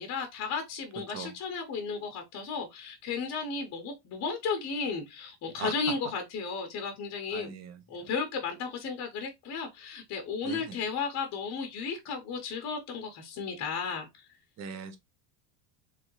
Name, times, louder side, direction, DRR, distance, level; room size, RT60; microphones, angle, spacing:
voice 1, 0.0-7.5 7.9-14.1, left 5 dB, 35° left, 0.9 m, -34 dB
voice 2, 0.9-1.3 5.6-5.7 7.3-8.1 10.4-10.8 14.6-15.0, right 6 dB, 30° right, 0.8 m, -41 dB
3.4 x 3.4 x 3.1 m
cardioid pair, 135°, 49 cm